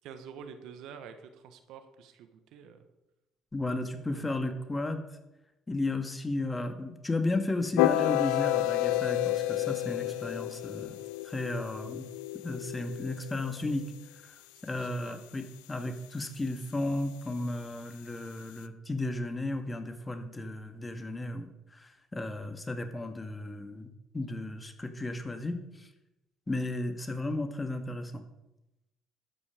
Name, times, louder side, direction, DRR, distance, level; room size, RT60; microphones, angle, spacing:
voice 1, 0.0-2.9 4.0-4.5 14.5-15.2, right 7 dB, 70° right, 9 dB, 1.3 m, -48 dB
voice 2, 3.5-5.0 5.7-10.9 11.2-12.1 12.3-13.9 14.2-14.4 14.6-25.9 26.5-28.2, left 2 dB, 25° left, 7 dB, 1.8 m, -34 dB
sound 1, 7.8-13.8, left 15 dB, 80° left, 0.5 m, -30 dB
13.0 x 8.9 x 5.1 m, 0.94 s
hypercardioid pair, 55°, 0 cm